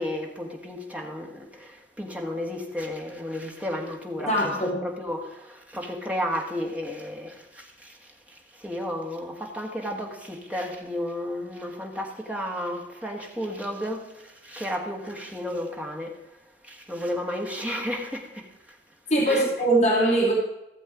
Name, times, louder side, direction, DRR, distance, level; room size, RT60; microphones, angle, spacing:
voice 1, 0.0-4.3 4.6-8.0 8.3-16.1 16.6-18.5 19.3-19.5, equal, 10° right, 1.6 m, -33 dB
voice 2, 4.2-4.8 19.1-20.3, right 1 dB, 40° left, 2.9 m, -22 dB
16.0 x 7.0 x 5.0 m
head